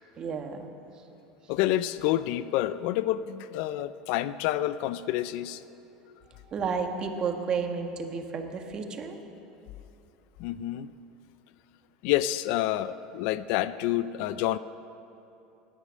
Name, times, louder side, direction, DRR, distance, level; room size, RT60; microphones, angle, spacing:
voice 1, 0.2-0.7 6.5-9.2, right 5 dB, 35° right, 5 dB, 1.5 m, -32 dB
voice 2, 1.5-5.6 10.4-10.9 12.0-14.6, left 14 dB, 70° left, 15 dB, 0.5 m, -28 dB
18.0 x 10.0 x 6.4 m, 2.8 s
supercardioid pair, 115°, 2 cm